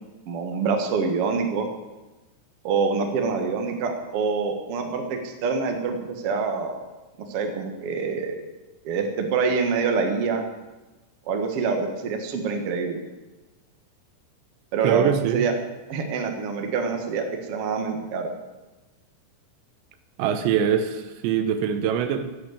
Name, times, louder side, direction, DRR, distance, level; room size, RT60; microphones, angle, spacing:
voice 1, 0.3-1.7 2.6-6.8 7.2-8.4 8.8-10.4 11.3-13.0 14.7-15.5 15.9-18.3, right 5 dB, 60° right, 4 dB, 1.5 m, -26 dB
voice 2, 14.8-15.5 20.2-22.3, right 8 dB, 85° right, 9 dB, 3.3 m, -23 dB
15.0 x 8.4 x 8.2 m, 1.1 s
omnidirectional pair, 5.1 m